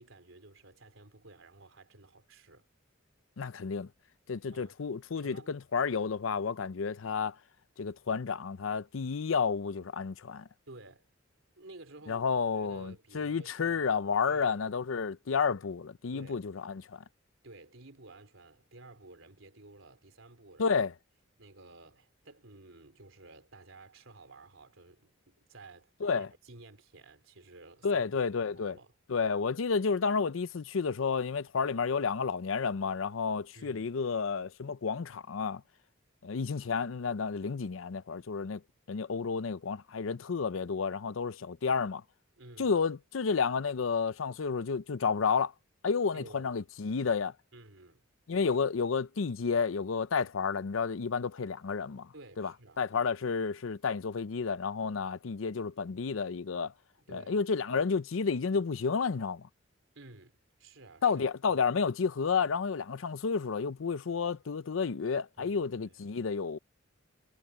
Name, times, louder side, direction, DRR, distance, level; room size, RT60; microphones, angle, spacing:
voice 1, 0.0-2.7 4.5-4.7 5.2-5.5 10.7-11.1 11.6-12.3 12.5-13.8 14.3-14.6 16.1-16.4 17.4-20.7 21.4-28.2 28.5-28.9 33.5-33.9 42.4-42.8 46.1-46.5 47.5-48.0 52.1-52.8 57.1-57.4 59.9-61.2 65.4-66.0, right 2 dB, 90° right, 3.5 m, -53 dB
voice 2, 3.4-3.9 4.3-7.4 7.8-10.5 12.1-17.0 20.6-20.9 26.0-26.3 27.8-28.8 29.1-35.6 36.2-38.6 38.9-42.0 42.6-45.5 45.8-47.3 48.3-52.5 52.8-56.7 57.1-59.5 61.0-66.6, left 5 dB, 90° left, 0.6 m, -31 dB
head